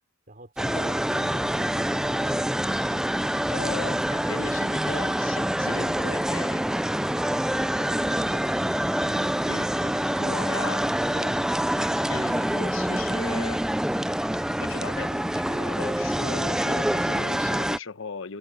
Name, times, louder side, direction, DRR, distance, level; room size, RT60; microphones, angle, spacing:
voice 1, 0.3-2.6 3.6-3.8 7.8-8.8 9.0-10.6 11.0-11.8, right 1 dB, 45° right, 3.5 m, -45 dB
sound 1, 0.6-17.8, equal, 5° right, 0.4 m, -26 dB
voice 2, 3.5-6.6 9.5-9.7 10.2-10.8 12.1-13.6 14.6-18.4, left 4 dB, 85° left, 1.0 m, -38 dB
head